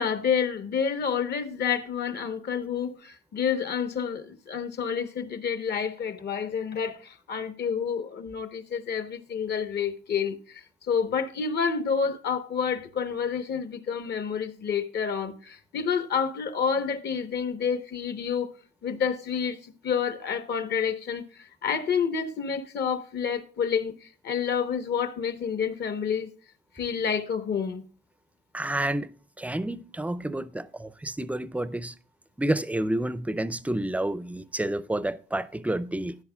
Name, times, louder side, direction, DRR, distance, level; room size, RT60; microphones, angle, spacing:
voice 1, 0.0-18.5 18.8-26.3 26.7-27.9, left 6 dB, 55° left, 1.1 m, -29 dB
voice 2, 28.5-29.1 29.4-31.9 32.4-36.2, right 1 dB, 5° right, 0.5 m, -29 dB
13.0 x 10.0 x 2.3 m
cardioid pair, 90°, 20 cm